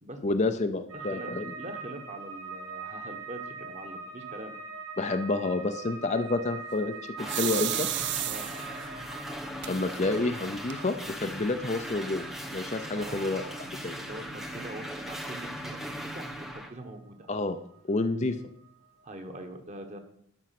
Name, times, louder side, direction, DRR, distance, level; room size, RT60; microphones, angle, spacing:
voice 1, 0.2-1.5 5.0-7.9 9.7-13.4 13.8-14.0 17.3-17.6 17.9-18.4, left 2 dB, 30° left, 8 dB, 0.5 m, -29 dB
voice 2, 0.9-4.6 8.2-8.5 12.9-15.8 16.1-16.3 16.5-17.3 19.0-20.0, right 1 dB, 30° right, 6 dB, 1.3 m, -43 dB
sound 1, 0.9-18.0 18.3-19.0, right 4 dB, 65° right, 1.9 m, -44 dB
sound 2, 7.2-16.7, equal, ahead, 0.7 m, -39 dB
sound 3, 7.3-8.8 9.6-9.7 10.1-10.2 10.5-11.1, right 13 dB, 50° right, 0.6 m, -31 dB
12.0 x 5.4 x 5.9 m, 0.72 s
head